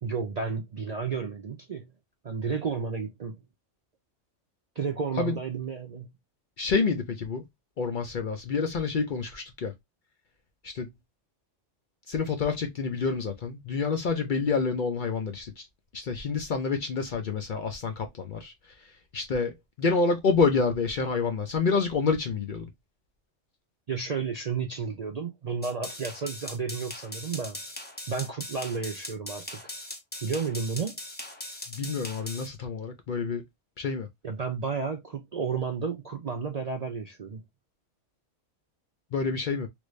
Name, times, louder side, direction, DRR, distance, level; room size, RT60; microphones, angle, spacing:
voice 1, 0.0-1.9 2.2-3.4 4.8-6.1 23.9-27.6 28.1-29.7 30.2-31.0 34.2-37.4, right 5 dB, 55° right, 0.4 m, -32 dB
voice 2, 6.6-7.4 7.8-9.7 10.6-10.9 12.1-15.7 15.9-22.7 31.7-33.4 33.8-34.1 39.1-39.7, left 4 dB, 55° left, 0.6 m, -28 dB
sound 1, 25.6-32.5, left 1 dB, 10° left, 0.5 m, -40 dB
3.1 x 2.5 x 3.1 m
omnidirectional pair, 1.3 m